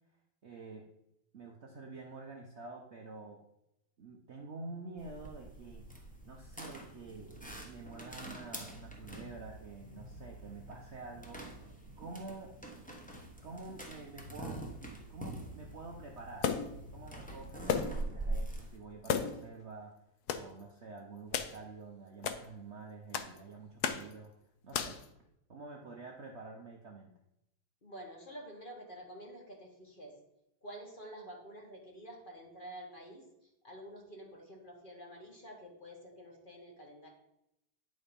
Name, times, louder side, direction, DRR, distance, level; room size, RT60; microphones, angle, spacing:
voice 1, 0.4-0.9 1.3-3.4 4.0-11.4 12.0-12.5 13.4-16.6 16.9-20.0 20.3-24.3 24.6-25.0 25.5-27.1, right 3 dB, 80° right, 1 dB, 0.6 m, -48 dB
sound 1, 5.0-18.8, right 1 dB, 10° left, 0.3 m, -44 dB
sound 2, 16.4-16.8 17.7-18.1 18.4-18.5 19.0-19.5 20.3-20.5 21.3-21.6 22.2-22.4 23.1-23.4 23.8-24.1 24.7-25.1, left 7 dB, 70° left, 0.9 m, -34 dB
voice 2, 27.8-30.1 30.6-37.1, equal, 30° left, 0 dB, 1.4 m, -49 dB
9.3 x 4.2 x 5.2 m, 0.82 s
omnidirectional pair, 2.3 m